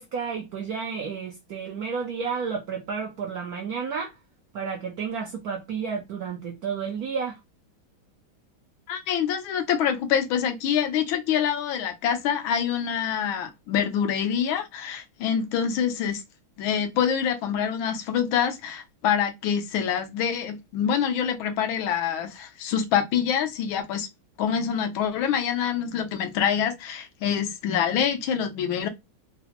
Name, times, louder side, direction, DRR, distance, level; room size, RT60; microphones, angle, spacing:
voice 1, 0.0-4.1 4.5-7.4, right 6 dB, 75° right, 0.8 m, -31 dB
voice 2, 8.9-16.2 16.6-24.1 24.4-28.9, left 8 dB, 80° left, 1.5 m, -26 dB
3.8 x 2.0 x 2.9 m
omnidirectional pair, 2.2 m